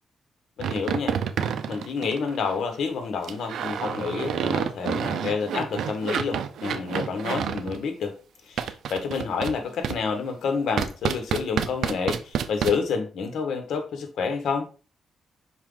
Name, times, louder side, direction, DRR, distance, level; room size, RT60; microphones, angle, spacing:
voice 1, 0.6-1.2 1.7-8.2 8.5-14.7, left 5 dB, 80° left, 1.4 m, -29 dB
sound 1, 0.6-2.5 3.2-7.8 8.6-9.6 9.8-10.0 10.8-12.7, right 8 dB, 80° right, 0.5 m, -29 dB
5.6 x 4.5 x 3.8 m
cardioid pair, 100°, 0 cm